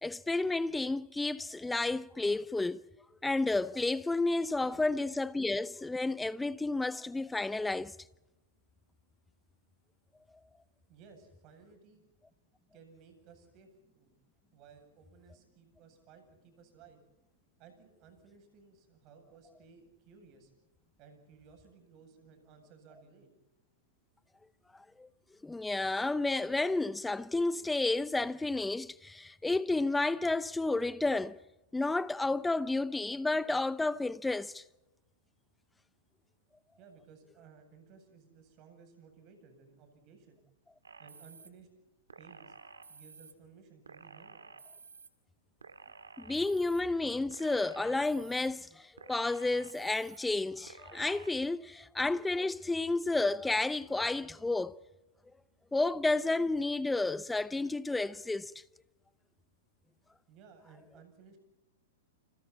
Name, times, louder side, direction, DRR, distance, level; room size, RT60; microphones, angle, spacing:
voice 1, 0.0-2.8 3.2-7.9 25.0-25.1 25.4-31.4 31.7-34.6 46.2-54.8 55.7-58.5, left 2 dB, 5° left, 0.8 m, -31 dB
voice 2, 10.9-12.0 12.7-14.1 14.5-17.0 17.6-20.5 21.0-23.3 36.8-40.4 41.0-42.5 42.9-44.5 60.3-61.4, right 5 dB, 40° right, 8.0 m, -58 dB
sound 1, 40.8-41.5 42.1-43.3 43.8-45.1 45.6-46.8 47.3-48.5 49.0-50.2 50.7-51.3, right 5 dB, 90° right, 2.1 m, -52 dB
29.5 x 27.0 x 4.3 m
hypercardioid pair, 110°, 0 cm